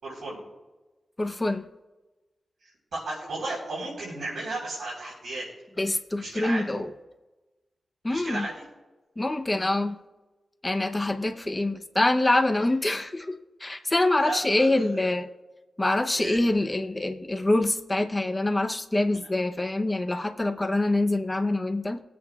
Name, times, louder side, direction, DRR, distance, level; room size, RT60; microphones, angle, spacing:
voice 1, 0.0-0.4 2.6-5.5 6.2-6.6 8.1-8.6 14.2-15.0 16.1-16.4, right 2 dB, 85° right, -7 dB, 4.1 m, -34 dB
voice 2, 1.2-1.6 5.8-6.9 8.0-8.5 9.2-10.0 10.6-15.3 15.8-22.0, left 2 dB, 20° left, 7 dB, 0.8 m, -25 dB
23.0 x 8.6 x 2.4 m, 1.1 s
wide cardioid pair, 105°, 0 cm